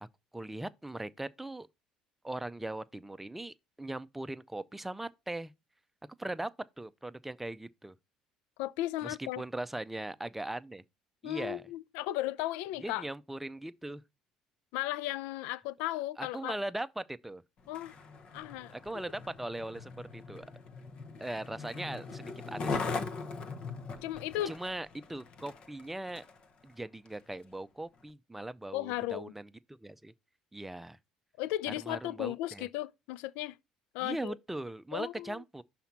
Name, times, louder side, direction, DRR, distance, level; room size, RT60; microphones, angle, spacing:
voice 1, 0.3-1.7 2.2-5.5 6.2-8.0 9.0-10.8 11.2-11.6 12.8-14.0 16.2-17.4 18.7-20.4 21.2-22.9 24.5-26.2 26.6-30.1 30.5-31.0 31.7-32.7 34.0-35.6, right 1 dB, 10° right, 0.6 m, -40 dB
voice 2, 8.6-9.4 11.2-13.1 14.7-16.6 17.7-18.0 18.3-19.0 24.0-24.5 28.7-29.3 31.4-33.6 33.9-34.3 34.9-35.4, left 15 dB, 80° left, 0.4 m, -35 dB
Skateboard, 17.6-26.4 27.1-27.2, left 4 dB, 50° left, 0.9 m, -40 dB
5.8 x 4.2 x 5.8 m
supercardioid pair, 75°, 2 cm